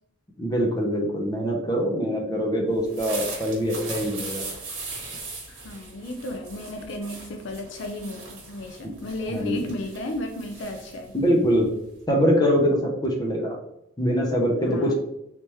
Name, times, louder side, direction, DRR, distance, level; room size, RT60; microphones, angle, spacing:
voice 1, 0.4-4.5 8.8-8.9 9.3-9.6 11.1-11.7 12.1-13.6 14.0-15.0, equal, 20° left, -1 dB, 0.6 m, -23 dB
sound 1, 2.7-12.0, right 3 dB, 70° right, 1.2 m, -39 dB
voice 2, 5.5-11.1 14.7-15.0, left 1 dB, 60° left, 4 dB, 0.5 m, -34 dB
3.3 x 3.0 x 3.0 m, 0.81 s
head